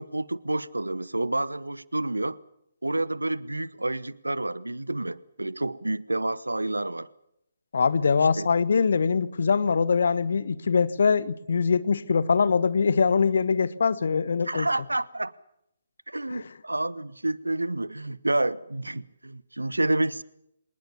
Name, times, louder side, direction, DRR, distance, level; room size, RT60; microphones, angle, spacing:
voice 1, 0.0-2.4 2.8-7.1 8.4-8.5 14.5-15.3 16.1-20.2, right 2 dB, 75° right, 1.0 m, -29 dB
voice 2, 7.7-14.7 16.3-16.5, left 5 dB, 55° left, 1.3 m, -23 dB
25.0 x 20.0 x 7.0 m
figure-of-eight pair, 135°, 0 cm